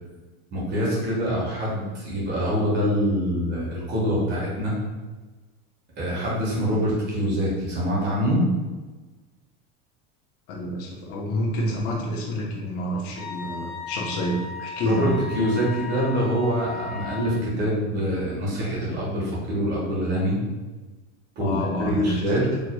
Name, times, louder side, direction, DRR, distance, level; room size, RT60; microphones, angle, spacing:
voice 1, 0.5-4.7 6.0-8.5 14.8-15.1 15.3-20.4 21.4-22.4, equal, 30° right, -5 dB, 1.5 m, -25 dB
voice 2, 10.5-15.2 21.4-22.2 22.5-22.6, equal, 45° left, -3 dB, 1.0 m, -28 dB
Wind instrument woodwind instrument, 13.2-17.4, left 5 dB, 20° left, 0.5 m, -36 dB
4.7 x 3.1 x 2.3 m, 1.3 s
supercardioid pair, 160°, 32 cm